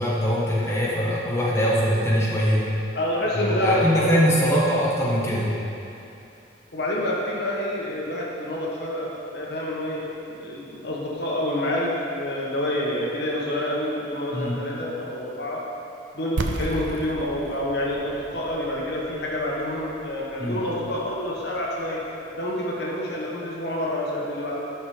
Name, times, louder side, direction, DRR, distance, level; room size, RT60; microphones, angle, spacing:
voice 1, 0.0-2.6 3.3-5.5 14.3-14.6 20.4-20.6, equal, 15° left, -7 dB, 1.4 m, -22 dB
voice 2, 2.9-4.5 6.7-15.6 16.1-22.0 22.3-24.6, left 1 dB, 60° left, -3 dB, 1.3 m, -28 dB
sound 1, 16.4-22.1, right 2 dB, 75° right, 0.7 m, -35 dB
11.0 x 5.8 x 4.9 m, 2.7 s
head